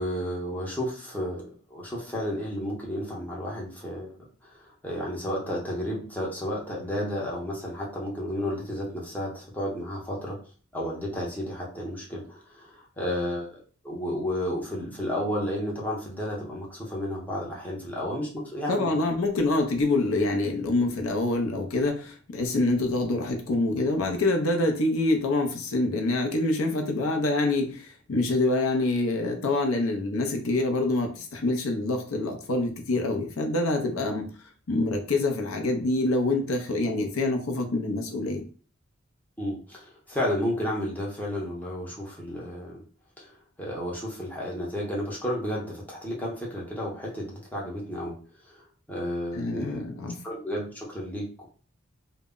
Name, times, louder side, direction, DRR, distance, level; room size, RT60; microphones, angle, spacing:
voice 1, 0.0-4.2 4.4-10.4 10.7-19.1 39.4-42.8 43.2-48.1 48.4-49.8 50.2-51.5, equal, 10° left, -4 dB, 0.7 m, -32 dB
voice 2, 18.7-34.3 34.7-38.4 49.3-50.2, left 2 dB, 75° left, 3 dB, 0.5 m, -26 dB
2.0 x 2.0 x 3.6 m, 0.40 s
head